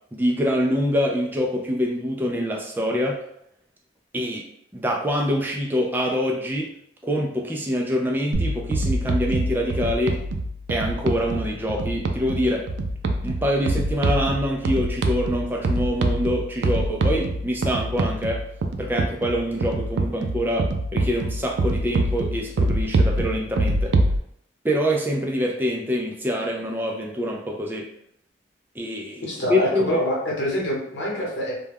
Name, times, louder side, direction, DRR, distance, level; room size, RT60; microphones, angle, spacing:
voice 1, 0.1-3.2 4.1-4.5 4.7-6.7 7.0-10.2 10.7-12.7 13.2-18.4 18.8-23.9 24.6-27.9 28.8-30.0, equal, 10° right, 0 dB, 0.3 m, -25 dB
sound 1, 8.3-24.2, right 2 dB, 90° right, 0.3 m, -25 dB
voice 2, 29.2-31.6, equal, 80° left, -3 dB, 0.9 m, -25 dB
2.2 x 2.2 x 3.3 m, 0.72 s
head